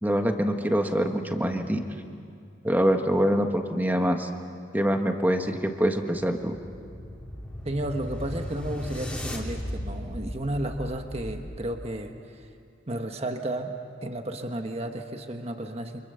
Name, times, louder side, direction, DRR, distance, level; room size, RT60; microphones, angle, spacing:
voice 1, 0.0-1.8 2.6-4.3 4.7-6.5, equal, 10° right, 5 dB, 1.4 m, -24 dB
sound 1, 5.9-12.0, equal, 5° left, 3.1 m, -37 dB
voice 2, 7.6-12.5 12.9-16.0, right 1 dB, 30° right, 5 dB, 1.4 m, -33 dB
29.5 x 27.0 x 7.0 m, 2.4 s
head